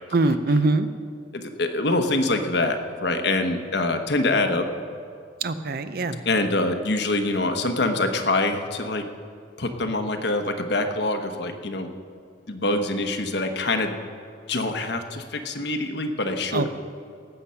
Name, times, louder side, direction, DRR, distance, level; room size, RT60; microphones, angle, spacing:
voice 1, 0.1-0.9 5.4-6.2 16.5-16.7, right 3 dB, 55° right, 11 dB, 0.6 m, -22 dB
voice 2, 1.3-4.7 6.2-9.0 9.6-11.9 12.5-13.9 14.5-16.7, left 2 dB, 60° left, 6 dB, 1.1 m, -25 dB
18.5 x 8.0 x 5.7 m, 2.4 s
head